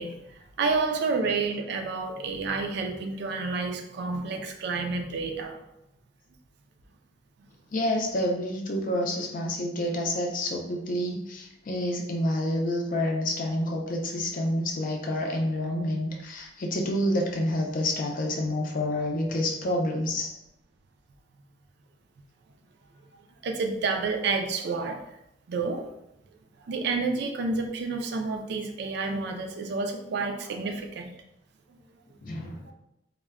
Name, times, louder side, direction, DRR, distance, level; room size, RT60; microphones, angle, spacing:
voice 1, 0.0-5.6 23.4-25.1 25.5-25.9 26.6-31.2 32.7-32.8, right 4 dB, 65° right, 4 dB, 0.3 m, -29 dB
voice 2, 7.7-20.3 32.2-32.7, left 1 dB, 50° left, 1 dB, 0.5 m, -28 dB
2.1 x 2.1 x 3.5 m, 0.84 s
head